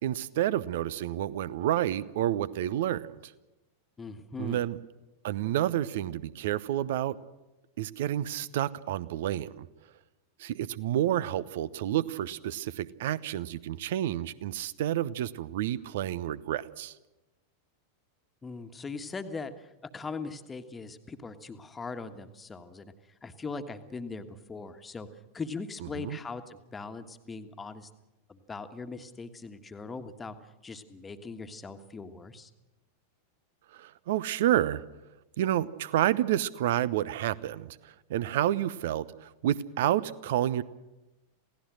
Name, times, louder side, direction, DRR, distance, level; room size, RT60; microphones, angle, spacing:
voice 1, 0.0-3.3 4.4-4.8 5.2-7.2 7.8-9.7 10.4-16.9 25.9-26.2 33.7-34.8 35.4-40.6, right 12 dB, 55° right, 19 dB, 0.9 m, -29 dB
voice 2, 4.0-4.6 18.4-22.9 23.2-25.1 25.3-27.9 28.3-30.4 30.6-32.5, left 4 dB, 15° left, 8 dB, 1.6 m, -40 dB
28.0 x 17.5 x 6.4 m, 1.0 s
figure-of-eight pair, 90°, 0 cm